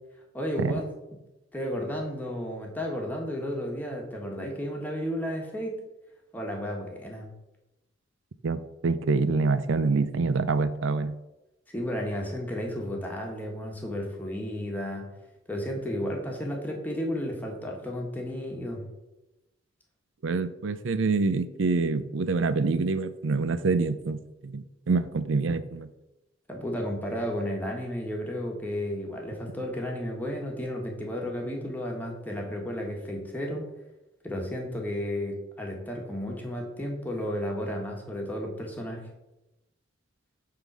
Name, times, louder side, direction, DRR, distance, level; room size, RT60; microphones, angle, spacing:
voice 1, 0.3-0.9 1.5-5.8 6.3-7.3 11.7-15.0 15.5-18.8 26.5-33.6 34.2-39.0, equal, 10° left, 0 dB, 1.5 m, -33 dB
voice 2, 8.4-11.2 20.2-25.9, right 4 dB, 85° right, 13 dB, 0.5 m, -26 dB
8.7 x 3.8 x 6.1 m, 0.98 s
head